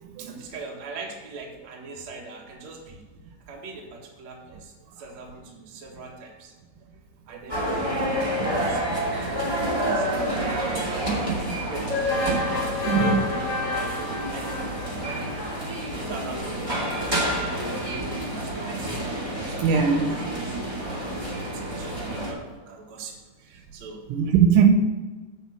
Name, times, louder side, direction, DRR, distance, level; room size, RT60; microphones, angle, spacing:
voice 1, 0.2-3.0 3.5-6.5 7.3-11.2 11.5-12.2 12.6-15.5 16.0-19.0 19.2-20.3 20.8-21.2 21.5-24.0, right 3 dB, 60° right, -2 dB, 1.9 m, -41 dB
sound 1, 7.5-22.3, right 1 dB, 20° right, 0.8 m, -28 dB
sound 2, 12.1-15.6, left 2 dB, 85° left, 1.5 m, -31 dB
voice 2, 12.9-13.2 19.6-20.1 24.1-24.7, right 7 dB, 80° right, 5 dB, 3.2 m, -19 dB
9.3 x 5.1 x 7.5 m, 1.2 s
omnidirectional pair, 5.7 m